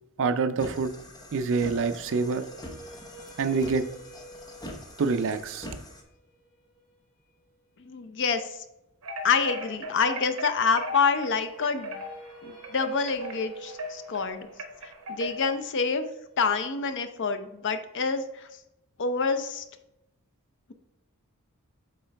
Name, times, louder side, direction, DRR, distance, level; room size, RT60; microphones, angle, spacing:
voice 1, 0.2-0.9 1.3-2.4 3.4-3.8 5.0-5.7, right 4 dB, 60° right, 11 dB, 0.4 m, -26 dB
sound 1, 0.6-6.0, equal, 20° left, 0.8 m, -44 dB
sound 2, 1.9-8.0 11.3-17.3, right 3 dB, 85° left, 2.5 m, -50 dB
voice 2, 7.8-8.6 9.2-12.0 12.4-14.5 14.8-16.1 16.4-18.5 19.0-19.6, left 5 dB, 55° left, 9 dB, 0.6 m, -27 dB
sound 3, 9.0-15.6, equal, 75° right, 0.9 m, -39 dB
8.7 x 3.8 x 3.3 m, 0.89 s
head